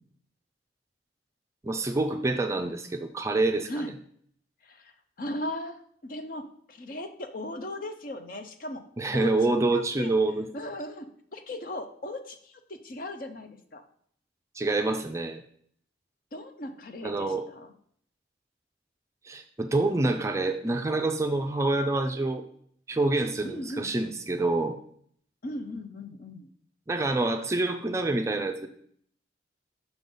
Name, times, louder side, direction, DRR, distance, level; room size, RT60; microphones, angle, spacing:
voice 1, 1.6-3.7 9.0-10.5 14.6-15.4 17.0-17.4 19.2-22.4 22.9-24.8 26.9-28.7, right 2 dB, 15° right, 6 dB, 0.4 m, -27 dB
voice 2, 4.6-8.8 9.1-10.1 10.5-13.8 16.3-17.7 23.4-24.0 25.4-26.5, left 1 dB, 50° left, 7 dB, 0.6 m, -38 dB
6.0 x 3.8 x 5.3 m, 0.62 s
head